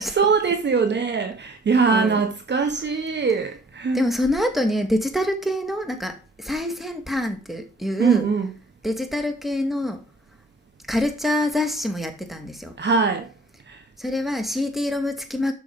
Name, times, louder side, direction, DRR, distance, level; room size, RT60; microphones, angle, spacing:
voice 1, 0.0-4.0 8.0-8.5 12.8-13.3 13.7-13.8, right 5 dB, 35° right, 1.1 m, -22 dB
voice 2, 3.9-8.2 8.8-10.0 10.9-12.7 14.0-15.5, left 1 dB, ahead, 2.2 m, -25 dB
9.2 x 6.4 x 5.2 m
cardioid pair, 90°, 30 cm